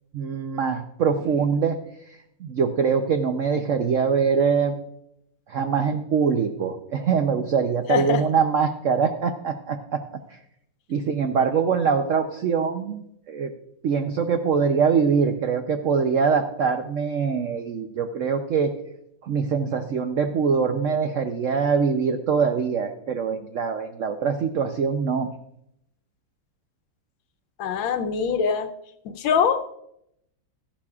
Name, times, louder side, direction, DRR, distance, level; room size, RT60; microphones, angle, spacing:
voice 1, 0.1-1.8 2.4-4.8 5.5-10.0 10.3-10.4 10.9-13.5 13.8-18.7 19.2-25.3, right 6 dB, 80° right, 6 dB, 0.7 m, -23 dB
voice 2, 7.9-8.2 27.6-28.7 29.0-29.6, left 7 dB, 80° left, 8 dB, 1.5 m, -23 dB
14.0 x 11.5 x 2.4 m, 0.77 s
omnidirectional pair, 2.1 m